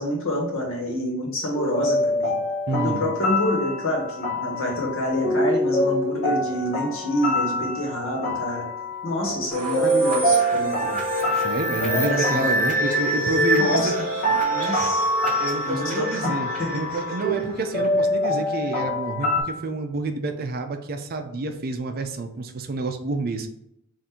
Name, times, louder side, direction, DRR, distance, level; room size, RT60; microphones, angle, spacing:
voice 1, 0.0-2.4 2.7-8.7 9.0-11.0 11.7-12.6 13.6-14.0 14.5-15.1 15.6-17.0, left 1 dB, 65° left, -1 dB, 1.2 m, -27 dB
sound 1, 1.5-19.4, equal, 45° left, 1.1 m, -26 dB
voice 2, 2.7-3.1 11.3-13.9 15.4-23.5, right 3 dB, 45° right, 6 dB, 0.5 m, -29 dB
sound 2, 9.5-18.1, equal, 5° left, 1.3 m, -28 dB
3.7 x 2.6 x 4.3 m, 0.77 s
head